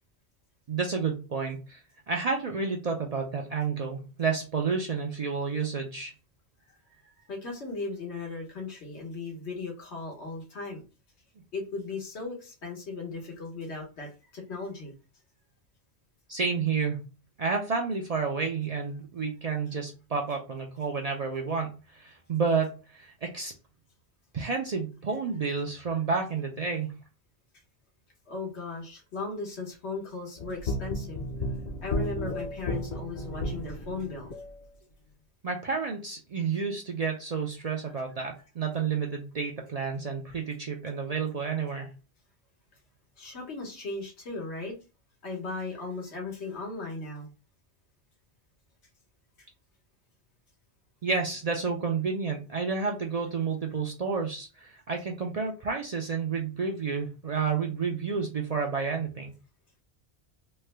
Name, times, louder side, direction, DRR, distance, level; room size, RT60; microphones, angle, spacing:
voice 1, 0.7-1.8 2.1-6.1 16.3-17.1 17.4-23.5 24.3-27.0 35.4-41.9 51.0-59.3, right 5 dB, 50° right, 1 dB, 0.5 m, -30 dB
voice 2, 7.3-10.8 11.5-14.9 28.3-31.2 31.8-34.3 43.2-44.7 45.2-47.3, left 3 dB, 85° left, 0 dB, 1.4 m, -37 dB
sound 1, 30.4-34.5, left 1 dB, 50° left, 0.6 m, -33 dB
3.3 x 2.1 x 3.2 m, 0.32 s
omnidirectional pair, 1.1 m